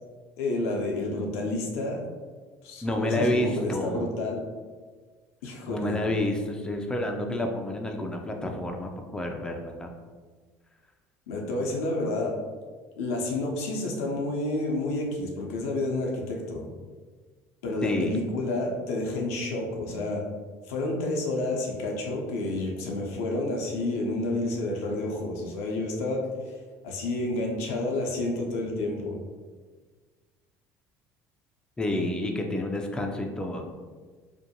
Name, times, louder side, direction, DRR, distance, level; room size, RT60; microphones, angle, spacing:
voice 1, 0.4-2.0 2.6-4.4 5.4-6.0 11.3-12.4 13.0-16.7 17.6-20.2 20.7-26.2 26.8-29.2, left 2 dB, 85° left, 0 dB, 0.5 m, -30 dB
voice 2, 2.8-4.1 5.7-9.9 17.8-18.2 31.8-33.7, left 1 dB, 10° left, 2 dB, 0.4 m, -29 dB
2.5 x 2.1 x 2.7 m, 1.4 s
hypercardioid pair, 75°, 8 cm